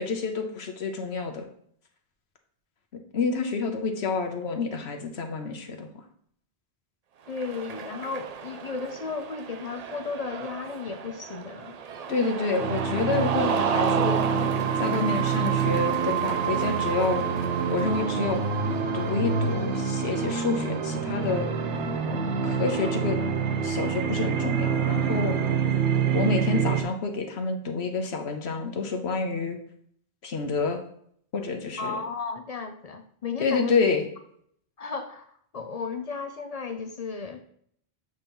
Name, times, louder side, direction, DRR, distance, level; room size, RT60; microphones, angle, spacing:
voice 1, 0.0-1.5 3.1-5.9 12.1-14.2 14.8-17.3 17.7-18.4 18.9-21.5 22.4-23.2 23.6-25.4 26.1-29.6 30.2-30.8 31.3-32.0 33.4-34.0, left 4 dB, 70° left, 4 dB, 1.1 m, -28 dB
voice 2, 7.3-11.7 13.1-13.3 31.8-33.7 34.8-37.4, left 4 dB, 50° left, 6 dB, 0.5 m, -34 dB
Cheering, 7.3-20.7, right 7 dB, 55° right, 0.4 m, -34 dB
sound 1, 12.6-26.8, right 6 dB, 90° right, 1.2 m, -26 dB
7.8 x 2.9 x 5.2 m, 0.64 s
omnidirectional pair, 1.1 m